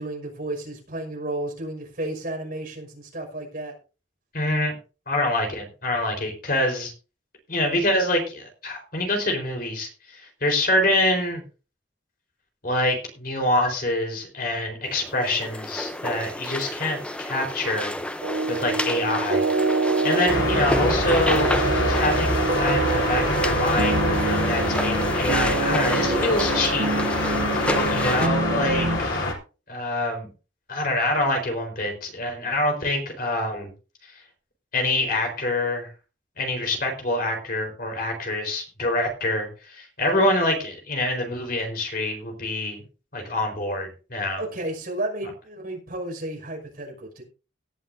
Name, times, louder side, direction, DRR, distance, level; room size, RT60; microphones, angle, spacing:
voice 1, 0.0-3.7 44.4-47.2, right 1 dB, 50° right, 1 dB, 5.8 m, -32 dB
voice 2, 4.3-4.7 5.1-6.9 7.5-11.4 12.6-17.9 18.5-19.5 19.7-21.5 21.8-26.9 27.2-27.3 27.9-29.3 29.7-30.3 30.7-33.7 34.7-35.9 36.4-42.8 43.1-44.4, left 1 dB, 50° left, 3 dB, 4.4 m, -26 dB
sound 1, 14.9-28.3, left 1 dB, 5° left, 0.7 m, -31 dB
sound 2, 18.2-29.0, right 3 dB, 70° right, 0.8 m, -26 dB
sound 3, 20.3-29.3, left 2 dB, 80° left, 3.7 m, -25 dB
18.0 x 11.5 x 2.7 m, 0.35 s
head